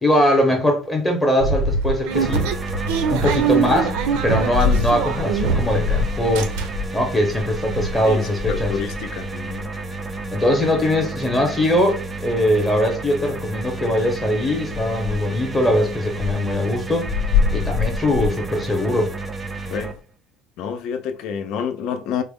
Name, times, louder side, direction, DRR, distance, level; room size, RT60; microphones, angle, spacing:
voice 1, 0.0-2.5 3.1-6.5 6.9-8.7 10.3-17.1 17.5-19.1, left 1 dB, 10° left, 0.7 m, -21 dB
sound 1, 1.4-5.9 6.2-7.0 7.4-7.5 7.7-7.9, right 5 dB, 75° right, 0.6 m, -23 dB
sound 2, 2.1-19.9, right 3 dB, 15° right, 0.3 m, -31 dB
sound 3, 4.5-20.0, left 6 dB, 80° left, 0.7 m, -28 dB
voice 2, 8.0-9.7 19.7-20.0 20.6-22.2, left 7 dB, 50° left, 0.4 m, -28 dB
3.9 x 2.0 x 3.5 m
cardioid pair, 175°, 0 cm